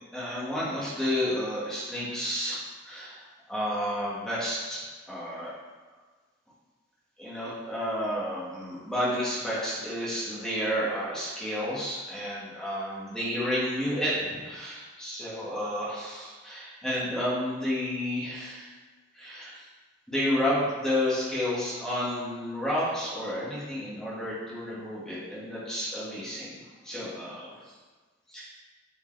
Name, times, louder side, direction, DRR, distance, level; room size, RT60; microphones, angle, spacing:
voice 1, 0.1-3.2 3.5-4.8 5.1-5.5 7.2-18.7 19.1-19.6 20.1-27.6 28.3-28.4, left 1 dB, 5° left, -8 dB, 1.8 m, -31 dB
6.8 x 4.8 x 3.4 m, 1.4 s
head